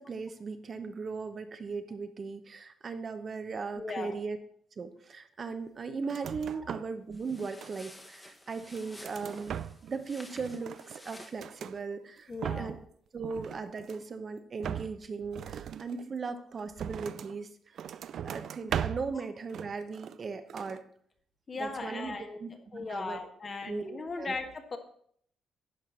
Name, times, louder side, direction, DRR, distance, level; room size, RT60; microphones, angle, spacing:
voice 1, 0.0-4.4 4.8-9.6 9.9-12.7 13.1-17.5 18.2-20.8 21.5-23.2 23.7-24.4, right 4 dB, 40° right, 8 dB, 0.9 m, -38 dB
voice 2, 3.7-4.2 12.3-12.8 21.5-24.8, left 3 dB, 40° left, 5 dB, 1.4 m, -38 dB
sound 1, 6.0-7.0 7.3-8.1 8.6-10.0 10.3-11.8 12.2-12.9 13.2-14.1 14.6-17.4 17.8-19.2 19.5-20.2 20.5-20.8, right 9 dB, 65° right, 0.3 m, -39 dB
sound 2, 7.1-11.4, left 1 dB, 15° left, 1.4 m, -52 dB
11.0 x 4.6 x 5.6 m, 0.63 s
cardioid pair, 90°, 0 cm